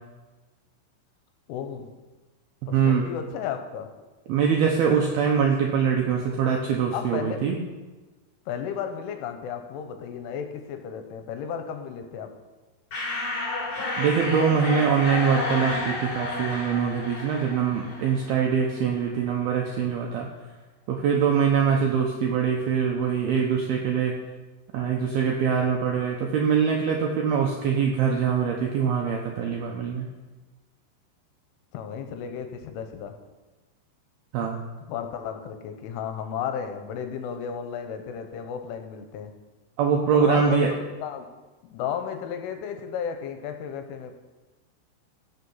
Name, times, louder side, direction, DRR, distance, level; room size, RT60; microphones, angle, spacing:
voice 1, 1.5-1.9 2.7-3.9 6.9-7.4 8.5-12.3 31.7-33.1 34.9-39.3 40.1-40.6 41.0-41.3 41.7-44.1, left 8 dB, 80° left, 6 dB, 3.3 m, -33 dB
voice 2, 2.7-3.1 4.3-7.6 14.0-20.3 20.9-24.2 24.7-30.1 34.3-34.6 39.8-40.7, right 7 dB, 85° right, 0 dB, 2.2 m, -23 dB
sound 1, 12.9-18.4, left 2 dB, 40° left, 3.5 m, -31 dB
16.5 x 6.6 x 5.6 m, 1.2 s
omnidirectional pair, 5.7 m